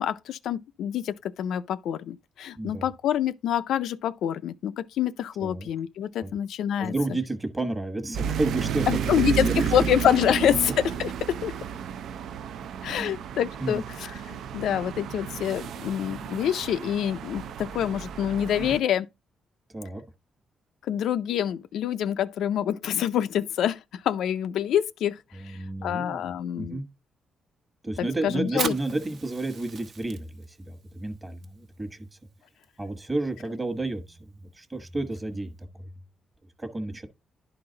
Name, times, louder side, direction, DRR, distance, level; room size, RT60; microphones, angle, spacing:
voice 1, 0.0-6.9 8.9-11.5 12.8-19.1 20.9-25.2 25.4-26.8 28.0-28.7, left 10 dB, 80° left, 0.4 m, -27 dB
voice 2, 2.6-2.9 5.4-5.7 6.2-6.3 6.8-9.7 12.9-13.1 13.6-13.8 18.6-18.8 19.7-20.0 25.3-26.3 26.6-26.9 27.8-32.1 32.8-35.9 36.6-37.1, right 2 dB, 15° right, 1.1 m, -31 dB
sound 1, 8.1-18.8, right 8 dB, 70° right, 0.5 m, -32 dB
Fire, 28.4-35.6, right 5 dB, 55° right, 1.0 m, -41 dB
11.5 x 4.0 x 3.8 m
cardioid pair, 160°, 0 cm